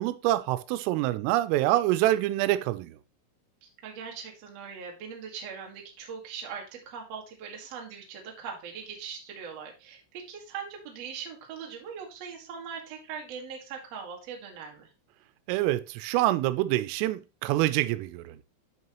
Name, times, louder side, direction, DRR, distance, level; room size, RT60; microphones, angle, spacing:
voice 1, 0.0-2.9 15.5-18.4, right 15 dB, 90° right, 3.2 m, -26 dB
voice 2, 3.6-14.9, right 6 dB, 65° right, 1.6 m, -41 dB
9.6 x 5.5 x 3.0 m
omnidirectional pair, 5.7 m